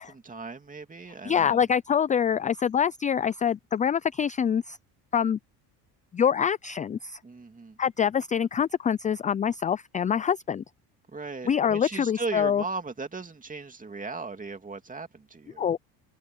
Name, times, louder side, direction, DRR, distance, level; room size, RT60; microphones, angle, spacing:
voice 1, 0.0-1.6 7.2-7.8 11.1-15.8, right 4 dB, 20° right, 2.6 m, -37 dB
voice 2, 1.2-4.8 5.1-5.4 6.1-7.2 7.8-10.6 11.5-12.6 15.6-15.8, left 8 dB, 20° left, 0.3 m, -25 dB
cardioid pair, 105°, 42 cm